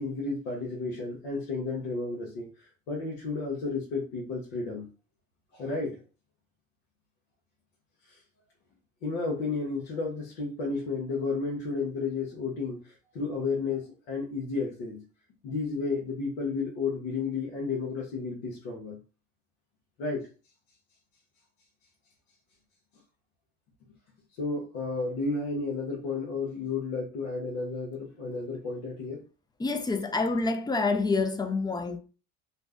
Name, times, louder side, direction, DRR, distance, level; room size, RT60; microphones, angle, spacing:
voice 1, 0.0-2.5 2.9-4.9 5.5-6.0 9.0-15.0 15.4-19.0 20.0-20.3 24.4-29.2, left 4 dB, 85° left, 0.8 m, -32 dB
voice 2, 29.6-32.0, left 3 dB, 10° left, 0.4 m, -27 dB
2.5 x 2.0 x 3.5 m
supercardioid pair, 80°, 34 cm